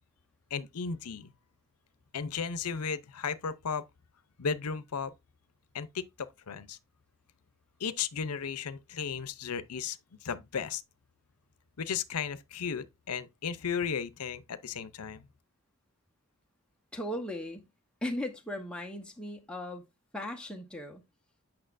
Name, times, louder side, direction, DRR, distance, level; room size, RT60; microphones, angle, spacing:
voice 1, 0.5-1.3 2.1-3.8 4.4-5.1 5.7-6.8 7.8-10.8 11.8-15.2, left 6 dB, 90° left, 0.7 m, -35 dB
voice 2, 16.9-17.7 18.0-19.8 20.1-21.0, left 1 dB, 5° left, 0.9 m, -37 dB
8.8 x 5.9 x 2.5 m
head